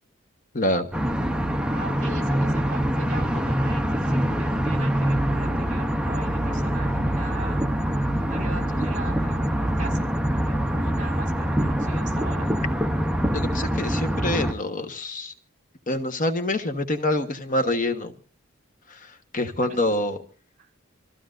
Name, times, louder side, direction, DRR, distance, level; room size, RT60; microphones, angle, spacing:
voice 1, 0.5-0.9 13.3-15.3 15.9-18.1 19.3-20.2, left 1 dB, 40° left, 1.2 m, -26 dB
sound 1, 0.9-14.5, equal, 5° right, 0.7 m, -24 dB
voice 2, 1.7-7.7 8.3-12.5 19.6-19.8, right 2 dB, 40° right, 5.8 m, -40 dB
27.5 x 15.0 x 2.5 m
head